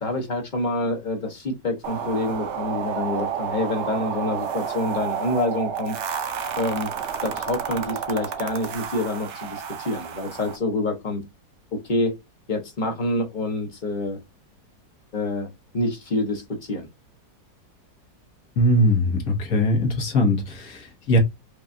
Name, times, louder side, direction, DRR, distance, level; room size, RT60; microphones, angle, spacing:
voice 1, 0.0-6.2 6.6-6.9 7.2-11.2 11.7-12.1 12.5-14.2 15.1-15.5 15.7-16.9, left 2 dB, 40° left, 0.7 m, -27 dB
sound 1, 1.8-10.6, right 7 dB, 85° right, 0.6 m, -30 dB
voice 2, 18.6-21.2, left 1 dB, 55° left, 1.4 m, -21 dB
4.8 x 2.3 x 2.6 m
omnidirectional pair, 2.0 m